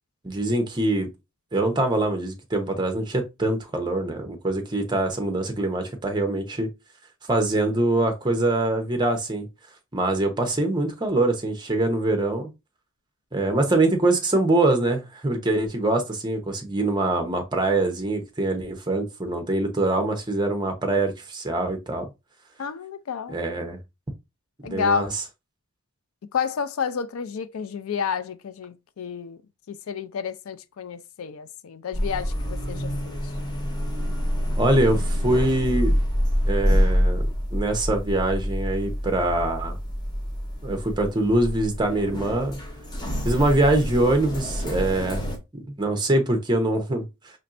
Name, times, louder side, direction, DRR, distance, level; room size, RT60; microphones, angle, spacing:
voice 1, 0.2-1.1 1.5-6.7 7.3-9.5 9.9-12.5 13.3-22.1 23.3-23.8 24.6-25.1 34.6-35.9 36.5-37.2 37.5-39.8 40.6-42.6 43.2-47.1, right 2 dB, 20° right, 0.7 m, -24 dB
voice 2, 22.6-23.4 24.6-25.1 26.3-29.4 29.7-33.2, left 6 dB, 75° left, 0.4 m, -30 dB
sound 1, 31.9-45.4, equal, 20° left, 0.8 m, -26 dB
4.3 x 3.1 x 2.5 m
head